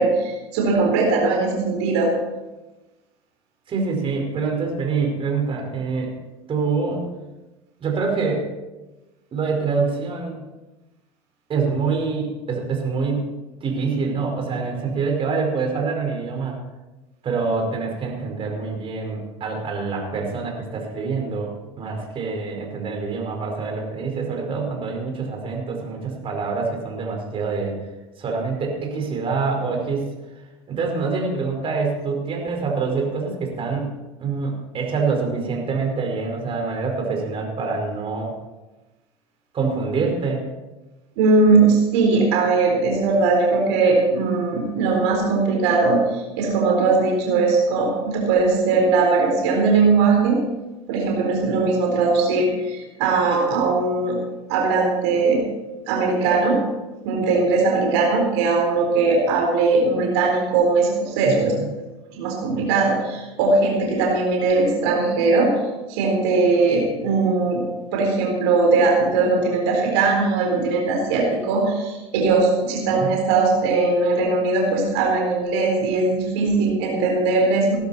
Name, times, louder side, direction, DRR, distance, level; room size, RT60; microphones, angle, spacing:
voice 1, 0.0-2.1 41.2-50.4 50.9-54.2 54.5-55.4 55.9-56.6 57.0-61.5 62.1-65.5 65.9-67.6 67.9-77.8, right 3 dB, 80° right, 0 dB, 4.2 m, -19 dB
voice 2, 3.7-6.1 6.5-7.0 7.8-8.4 9.3-10.4 11.5-13.3 13.6-16.6 17.2-27.8 28.2-30.1 30.7-33.9 34.2-38.3 39.5-40.5 61.4-61.7 72.9-73.1, right 4 dB, 40° right, 2 dB, 4.9 m, -25 dB
20.0 x 11.5 x 4.3 m, 1.1 s
hypercardioid pair, 90°, 14 cm